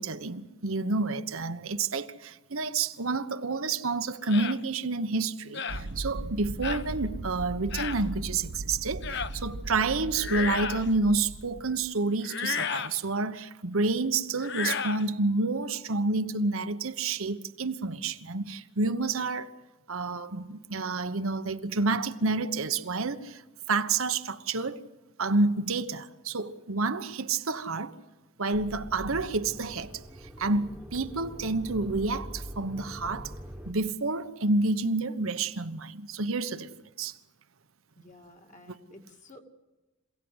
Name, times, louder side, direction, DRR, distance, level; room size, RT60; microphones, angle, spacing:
voice 1, 0.0-19.5 19.9-23.4 23.7-24.8 25.2-27.9 28.4-29.9 30.4-33.3 33.6-36.7 37.0-37.1 38.7-38.8, right 3 dB, 80° right, 1.2 m, -29 dB
sound 1, 4.3-4.6 5.5-5.8 6.6-6.9 7.7-8.0 9.0-9.4 10.1-10.9 12.2-13.0 14.4-15.0, left 6 dB, 55° left, 1.0 m, -32 dB
sound 2, 5.7-11.9, right 2 dB, 60° right, 0.8 m, -38 dB
sound 3, 28.5-33.7, equal, 5° right, 1.5 m, -43 dB
voice 2, 38.0-39.4, left 2 dB, 35° left, 2.5 m, -52 dB
26.5 x 17.5 x 8.1 m
head